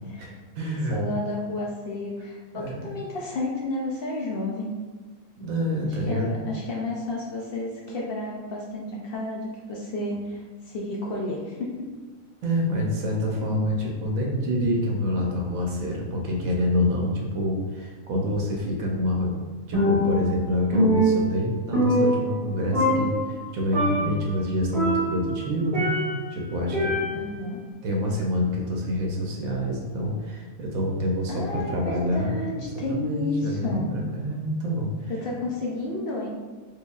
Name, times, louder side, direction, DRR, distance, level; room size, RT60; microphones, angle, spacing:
voice 1, 0.0-0.4 0.9-4.7 6.1-11.9 27.1-27.6 31.3-33.9 35.1-36.3, left 2 dB, 65° left, -3 dB, 0.6 m, -31 dB
voice 2, 0.6-1.0 2.5-2.9 5.4-6.5 12.4-19.4 19.7-25.9 26.3-27.0 27.8-32.5 32.9-35.1, left 1 dB, 80° right, -1 dB, 1.0 m, -27 dB
Percussion, 19.7-20.4 20.7-22.5 22.7-23.4 23.7-24.2 24.7-26.3 26.7-27.4, equal, 30° right, 0.8 m, -24 dB
4.6 x 2.6 x 2.3 m, 1.3 s
omnidirectional pair, 1.5 m